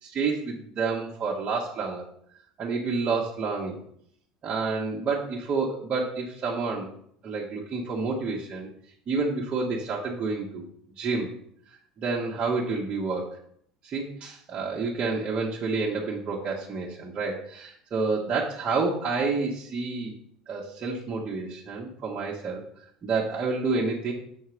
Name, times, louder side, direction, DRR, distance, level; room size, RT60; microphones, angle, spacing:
voice 1, 0.0-2.1 2.6-3.8 4.4-6.9 7.2-8.7 9.1-10.7 11.0-11.3 12.0-13.4 13.8-20.1 20.5-22.6 23.0-24.1, right 4 dB, 40° right, -4 dB, 1.5 m, -29 dB
6.6 x 4.6 x 5.8 m, 0.66 s
hypercardioid pair, 70°, 3 cm